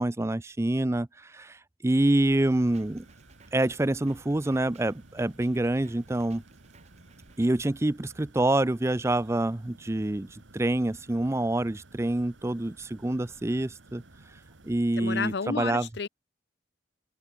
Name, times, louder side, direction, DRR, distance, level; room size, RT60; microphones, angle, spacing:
voice 1, 0.0-3.1 3.5-6.4 7.4-14.0 14.6-15.9, right 1 dB, 15° right, 0.4 m, -27 dB
Drum kit, 2.3-7.6, right 2 dB, 35° right, 7.8 m, -58 dB
sound 1, 2.4-14.7, right 2 dB, 75° right, 1.6 m, -55 dB
voice 2, 15.0-16.1, left 5 dB, 60° left, 0.6 m, -31 dB
head